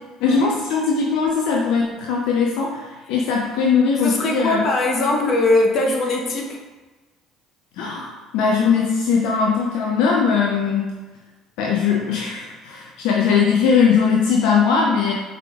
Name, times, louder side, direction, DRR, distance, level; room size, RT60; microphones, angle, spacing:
voice 1, 0.2-4.6 7.8-10.9 11.6-15.1, left 5 dB, 70° left, -2 dB, 0.5 m, -20 dB
voice 2, 4.0-6.6, left 2 dB, 50° left, 1 dB, 0.8 m, -20 dB
4.9 x 3.3 x 2.3 m, 1.2 s
hypercardioid pair, 65°, 0 cm